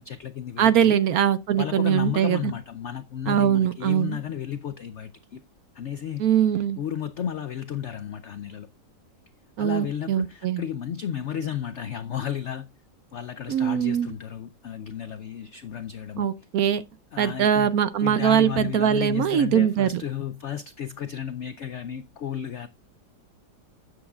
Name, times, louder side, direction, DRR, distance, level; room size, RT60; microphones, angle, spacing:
voice 1, 0.0-1.0 1.6-5.4 5.7-6.2 6.8-8.7 9.6-12.7 13.1-16.3 17.1-22.7, left 9 dB, 80° left, 0.6 m, -33 dB
voice 2, 0.6-2.5 3.3-4.2 6.2-6.8 9.6-10.6 13.5-14.1 16.2-16.8 17.2-20.0, right 9 dB, 65° right, 1.0 m, -22 dB
12.5 x 7.9 x 2.4 m
omnidirectional pair, 1.9 m